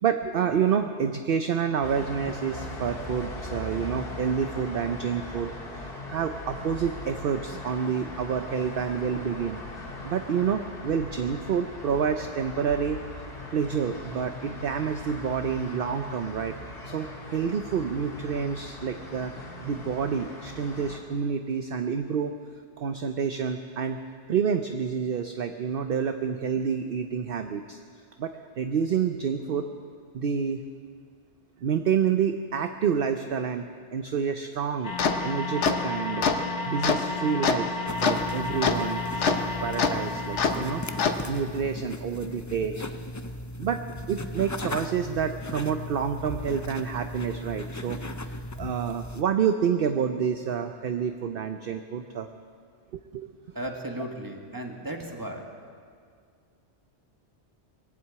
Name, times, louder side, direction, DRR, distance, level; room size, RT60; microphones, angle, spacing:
voice 1, 0.0-9.6 10.0-13.0 13.5-16.5 16.8-19.3 19.6-22.3 22.8-24.0 24.3-27.8 28.2-29.7 30.1-30.6 31.6-34.9 35.2-36.3 36.6-37.7 38.0-42.8 43.6-48.0 48.6-52.3 52.9-53.3, right 7 dB, 55° right, 7 dB, 0.8 m, -28 dB
sound 1, 1.8-21.0, left 2 dB, 55° left, 2.0 m, -40 dB
sound 2, 34.8-41.2, left 4 dB, 75° left, 1.2 m, -27 dB
sound 3, 37.9-49.2, left 1 dB, 30° left, 0.3 m, -37 dB
voice 2, 53.5-55.4, right 1 dB, 15° right, 1 dB, 1.6 m, -35 dB
21.5 x 7.8 x 8.5 m, 2.1 s
omnidirectional pair, 1.2 m